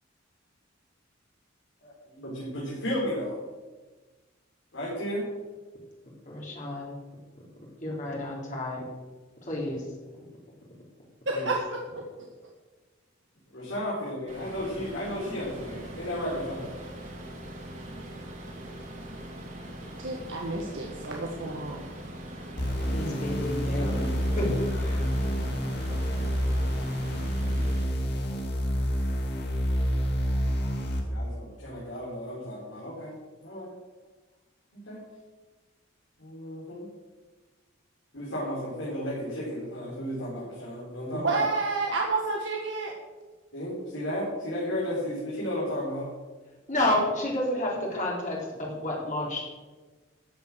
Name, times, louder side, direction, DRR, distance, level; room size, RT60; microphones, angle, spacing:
voice 1, 1.8-3.4 4.7-5.3 13.5-16.8 23.9-24.4 30.7-33.1 33.4-33.7 34.7-35.0 36.2-36.9 38.1-41.4 43.5-46.1, equal, 75° left, -7 dB, 4.8 m, -34 dB
voice 2, 6.3-7.0 7.8-8.9 9.4-9.8 11.3-11.5 22.9-25.1 46.7-49.4, left 1 dB, 40° left, -3 dB, 3.7 m, -30 dB
voice 3, 11.3-12.0 20.0-21.8 41.1-42.9, right 3 dB, 65° right, -1 dB, 1.8 m, -30 dB
sound 1, 14.3-27.8, right 1 dB, 40° right, 3.1 m, -42 dB
sound 2, 22.6-31.0, equal, 55° left, 2.6 m, -28 dB
14.0 x 9.7 x 6.4 m, 1.3 s
head